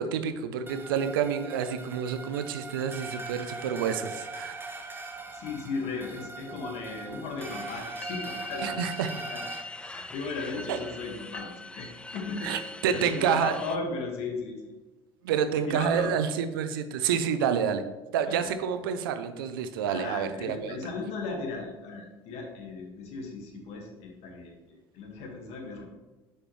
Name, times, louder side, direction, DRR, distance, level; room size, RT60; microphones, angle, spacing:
voice 1, 0.0-4.5 8.6-9.1 10.7-10.8 12.4-13.6 15.2-17.8 18.1-20.8, right 7 dB, 90° right, 10 dB, 0.5 m, -28 dB
sound 1, 0.7-9.6, right 3 dB, 20° right, 0.9 m, -41 dB
voice 2, 5.3-8.8 9.1-9.4 9.7-14.7 15.6-16.1 18.2-18.5 19.9-25.8, left 4 dB, 65° left, 1 dB, 1.6 m, -37 dB
sound 2, 7.4-13.8, left 2 dB, 10° left, 0.4 m, -42 dB
6.6 x 5.6 x 3.1 m, 1.1 s
hypercardioid pair, 75°, 11 cm